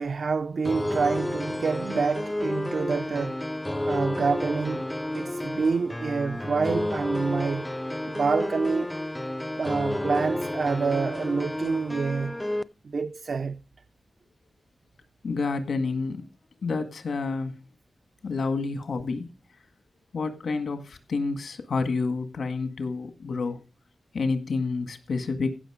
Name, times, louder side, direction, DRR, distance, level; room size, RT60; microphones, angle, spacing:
voice 1, 0.0-3.4 3.9-4.9 5.1-7.7 8.1-8.9 9.6-12.4 12.8-13.6, right 4 dB, 60° right, 0.5 m, -27 dB
sound 1, 0.7-12.6, left 1 dB, 10° left, 0.5 m, -31 dB
voice 2, 15.2-16.2 16.6-17.6 18.2-19.3 20.1-23.6 24.1-25.6, left 4 dB, 90° left, 1.8 m, -29 dB
16.0 x 6.1 x 4.9 m
wide cardioid pair, 155°, 0 cm